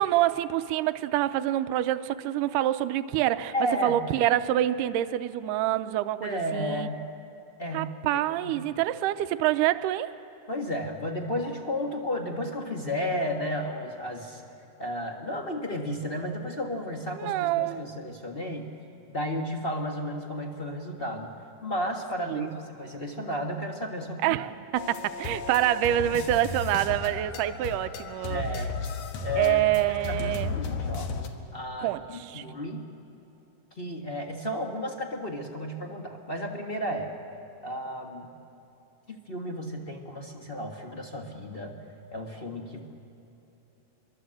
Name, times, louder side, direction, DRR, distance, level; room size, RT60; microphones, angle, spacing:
voice 1, 0.0-3.5 3.8-6.9 7.7-10.1 17.1-17.8 22.3-22.5 24.2-28.4 29.4-30.6 31.8-32.5, right 13 dB, 85° right, 12 dB, 2.2 m, -26 dB
voice 2, 3.5-4.0 6.2-7.1 7.6-8.6 10.5-14.4 14.8-18.7 19.1-21.3 21.6-24.4 28.3-28.7 29.2-31.1 31.5-32.9 33.7-37.1 37.6-38.3 39.1-41.7 42.1-42.8, equal, 40° left, 1 dB, 0.8 m, -33 dB
sound 1, 24.7-31.3, left 4 dB, 65° left, 2.6 m, -34 dB
26.0 x 23.0 x 7.7 m, 3.0 s
omnidirectional pair, 3.7 m